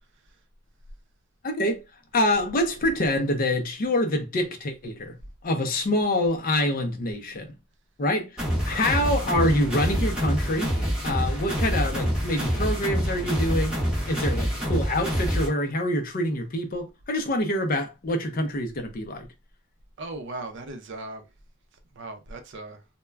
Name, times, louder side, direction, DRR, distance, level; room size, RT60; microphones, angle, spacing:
voice 1, 1.4-1.8 2.1-5.2 5.4-7.6 8.0-10.7 11.0-13.8 14.1-19.3, left 1 dB, 40° left, 0.5 m, -26 dB
sound 1, 8.4-15.5, equal, 5° right, 0.9 m, -26 dB
voice 2, 20.0-21.3 21.9-22.8, right 2 dB, 55° right, 0.5 m, -38 dB
2.2 x 2.1 x 3.3 m
head